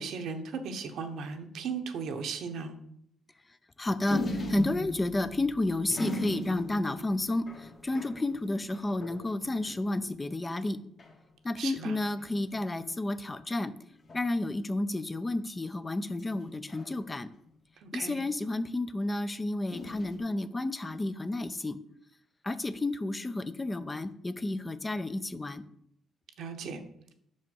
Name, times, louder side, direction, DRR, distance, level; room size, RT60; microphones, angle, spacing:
voice 1, 0.0-2.7 11.6-11.9 17.8-18.2 26.4-26.8, right 5 dB, 75° right, 6 dB, 0.9 m, -36 dB
voice 2, 3.8-10.8 11.4-13.7 14.1-17.3 17.9-21.8 22.4-25.6, left 2 dB, 20° left, 12 dB, 0.5 m, -31 dB
sound 1, 4.1-10.0 10.4-10.5 10.7-11.2 12.1-12.7 14.0-14.5 16.2-17.5 19.7-20.2, left 1 dB, 45° left, 1.4 m, -39 dB
5.9 x 5.3 x 5.3 m, 0.71 s
cardioid pair, 90°, 0 cm